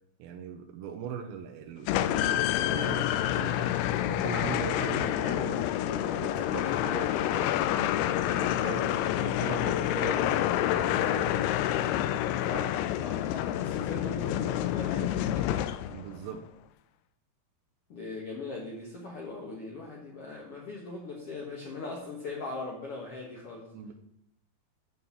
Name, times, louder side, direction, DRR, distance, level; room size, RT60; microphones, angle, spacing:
voice 1, 0.2-3.7 4.1-7.9 8.3-8.8 9.2-11.5 15.9-16.5 23.7-23.9, right 7 dB, 75° right, 3 dB, 2.4 m, -40 dB
sound 1, 1.9-16.1, left 12 dB, 85° left, 2.5 m, -28 dB
voice 2, 8.6-9.2 12.5-15.7 17.9-23.7, left 3 dB, 65° left, -2 dB, 1.4 m, -40 dB
9.4 x 4.1 x 7.3 m, 0.73 s
omnidirectional pair, 4.5 m